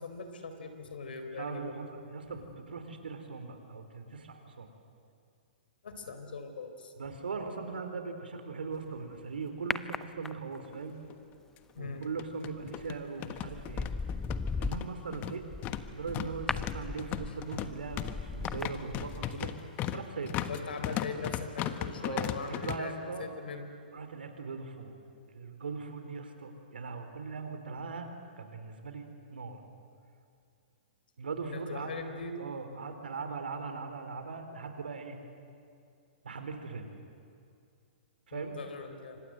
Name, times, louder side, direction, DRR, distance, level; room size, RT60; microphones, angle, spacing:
voice 1, 0.0-1.8 2.4-2.5 5.8-6.9 11.7-12.1 17.3-17.4 20.5-23.6 31.4-32.4 38.3-39.2, left 4 dB, 75° left, 7 dB, 4.2 m, -41 dB
voice 2, 1.4-4.7 7.0-11.0 11.8-13.9 14.6-15.4 15.9-19.5 19.9-20.4 22.0-23.3 23.9-25.0 25.3-29.6 31.2-31.9 32.4-35.2 36.2-36.9 38.3-38.5, right 4 dB, 80° right, 7 dB, 4.1 m, -40 dB
sound 1, 9.7-10.7 12.6-12.9 13.4-19.6 19.8-19.9, left 4 dB, 10° left, 0.6 m, -38 dB
sound 2, 10.7-10.8 11.1-11.2 12.0-22.8, left 12 dB, 30° left, 1.4 m, -37 dB
28.0 x 25.5 x 8.0 m, 2.5 s
hypercardioid pair, 130°, 5 cm